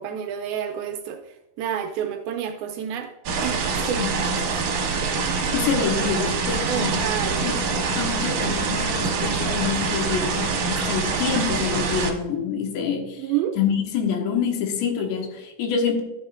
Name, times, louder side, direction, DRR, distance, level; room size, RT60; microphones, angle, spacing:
voice 1, 0.0-3.1 3.4-4.6 6.7-7.4 13.2-13.6, right 9 dB, 80° right, 5 dB, 2.3 m, -29 dB
sound 1, 3.3-12.1, right 5 dB, 60° right, 2.0 m, -25 dB
voice 2, 5.5-13.3 13.6-16.0, left 6 dB, 90° left, 2 dB, 3.5 m, -26 dB
12.0 x 7.8 x 2.4 m, 0.99 s
omnidirectional pair, 4.8 m